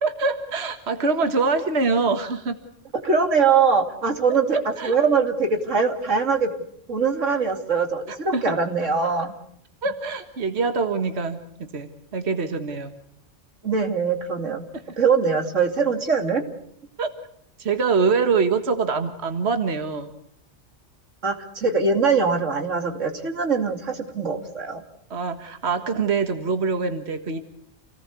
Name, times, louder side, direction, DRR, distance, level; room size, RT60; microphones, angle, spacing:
voice 1, 0.0-2.6 4.5-5.0 8.1-8.6 9.8-12.9 17.0-17.1 17.6-20.1 25.1-27.4, right 4 dB, 60° right, 7 dB, 1.9 m, -24 dB
voice 2, 2.9-4.6 4.8-6.5 6.9-9.3 13.6-14.6 15.0-16.4 21.2-24.8, right 5 dB, 90° right, 5 dB, 3.1 m, -22 dB
29.0 x 19.0 x 8.4 m, 0.70 s
omnidirectional pair, 1.3 m